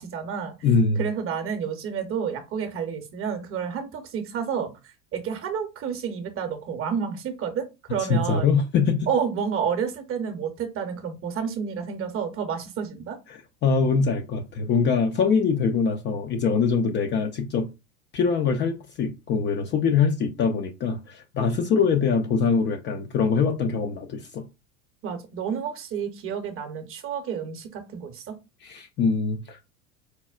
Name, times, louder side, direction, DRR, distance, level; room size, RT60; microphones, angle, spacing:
voice 1, 0.0-0.5 1.0-8.5 9.1-13.2 25.0-28.4, right 7 dB, 35° right, 0.7 m, -30 dB
voice 2, 0.6-1.0 8.1-9.1 13.3-17.7 18.1-24.4 28.6-29.7, left 5 dB, 30° left, 0.4 m, -23 dB
4.3 x 2.0 x 2.4 m
hypercardioid pair, 95°, 40 cm